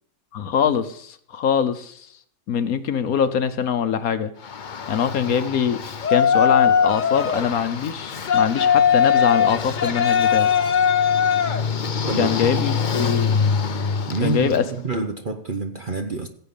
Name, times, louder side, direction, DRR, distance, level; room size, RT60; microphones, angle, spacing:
voice 1, 0.3-2.1 2.5-4.3 4.9-5.8 6.1-10.5 12.1-13.4 14.2-14.7, left 7 dB, 65° left, 1.2 m, -23 dB
Yell, 4.4-14.7, left 7 dB, 45° left, 0.6 m, -21 dB
voice 2, 12.1-12.4 12.6-12.7 14.1-16.3, right 4 dB, 40° right, 0.8 m, -27 dB
16.0 x 8.2 x 5.3 m
omnidirectional pair, 1.8 m